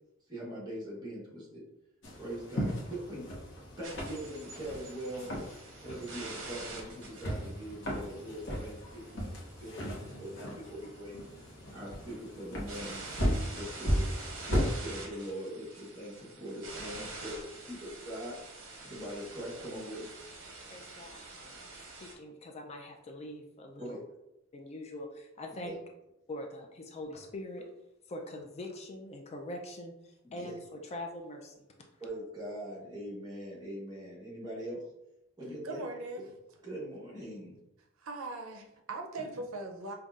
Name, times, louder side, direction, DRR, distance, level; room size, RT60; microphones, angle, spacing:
voice 1, 0.3-1.6 2.1-3.3 3.8-5.3 5.8-11.2 11.7-14.0 14.4-18.3 18.8-20.1 23.8-24.0 25.6-25.7 30.2-30.5 32.0-34.8 35.4-35.9 36.2-36.3 36.6-37.6 39.2-39.3, right 1 dB, 20° right, -6 dB, 1.2 m, -42 dB
sound 1, 2.0-14.8, equal, 65° left, 0.8 m, -36 dB
sound 2, 3.8-22.1, right 3 dB, 65° right, 0.8 m, -47 dB
voice 2, 20.7-21.6 22.0-24.0 24.5-25.8 26.3-27.7 28.1-31.5, left 1 dB, 30° left, 2 dB, 0.4 m, -43 dB
voice 3, 35.6-36.3 38.0-39.9, right 2 dB, 85° right, 3 dB, 0.5 m, -40 dB
5.3 x 2.2 x 2.4 m, 0.87 s
head